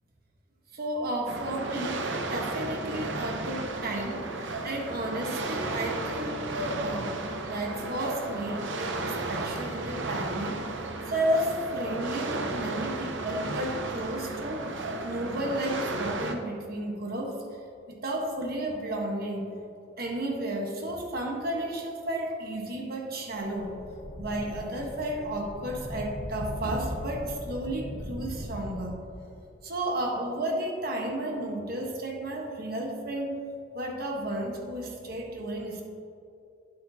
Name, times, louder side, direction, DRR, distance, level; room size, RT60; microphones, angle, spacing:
voice 1, 0.7-7.1 7.5-10.6 11.1-14.7 15.0-17.4 17.9-19.4 20.0-23.7 24.2-29.0 29.6-33.4 33.7-35.8, right 1 dB, 50° right, 1 dB, 1.2 m, -32 dB
sound 1, 1.3-16.3, right 2 dB, 70° right, 0.7 m, -34 dB
sound 2, 23.3-29.5, equal, 15° left, 1.9 m, -39 dB
9.5 x 8.1 x 2.8 m, 2.6 s
head